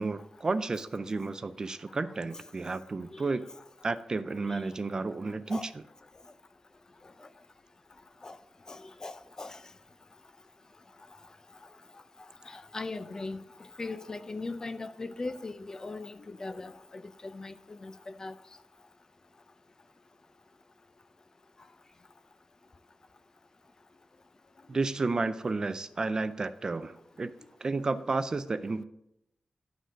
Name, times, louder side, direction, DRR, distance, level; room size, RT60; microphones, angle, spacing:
voice 1, 0.0-3.5 3.8-5.8 24.7-27.3 27.6-28.8, right 3 dB, 35° right, 0.4 m, -32 dB
voice 2, 8.7-9.6 12.5-13.4 13.8-18.3, left 3 dB, 30° left, 0.4 m, -39 dB
11.5 x 3.9 x 6.2 m
wide cardioid pair, 145°, 2 cm